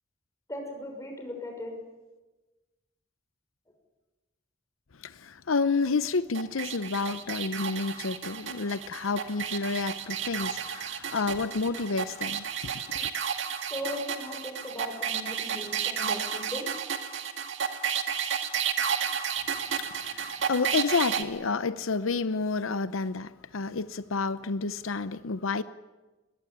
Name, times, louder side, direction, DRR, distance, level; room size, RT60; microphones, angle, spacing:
voice 1, 0.5-1.7 12.7-12.9 13.7-16.6, left 1 dB, 15° left, 2 dB, 6.2 m, -38 dB
voice 2, 5.0-13.1 19.8-25.6, left 4 dB, 85° left, 14 dB, 0.8 m, -30 dB
sound 1, 6.3-21.2, right 8 dB, 65° right, 1.9 m, -32 dB
22.5 x 20.5 x 10.0 m, 1.2 s
head